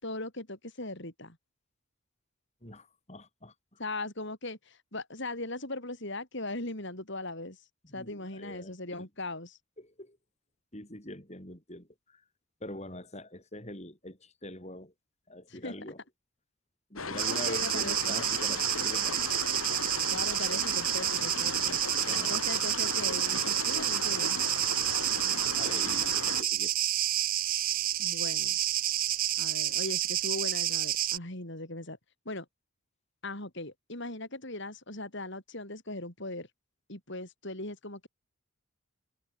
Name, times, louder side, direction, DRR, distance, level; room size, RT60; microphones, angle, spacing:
voice 1, 0.0-1.4 3.8-7.6 7.9-9.6 15.5-15.9 17.3-18.1 20.1-21.8 22.3-24.4 28.0-28.6 29.4-32.0 32.3-32.5 33.2-36.5 36.9-38.1, left 2 dB, 55° left, 5.7 m, -39 dB
voice 2, 2.6-3.8 7.9-9.0 9.8-10.2 10.7-12.2 12.6-14.9 15.3-16.0 16.9-19.2 22.0-22.4 25.2-26.7, left 1 dB, 30° left, 6.8 m, -44 dB
sound 1, 17.0-26.4, left 4 dB, 75° left, 6.6 m, -37 dB
sound 2, 17.2-31.2, right 12 dB, 40° right, 1.1 m, -29 dB
head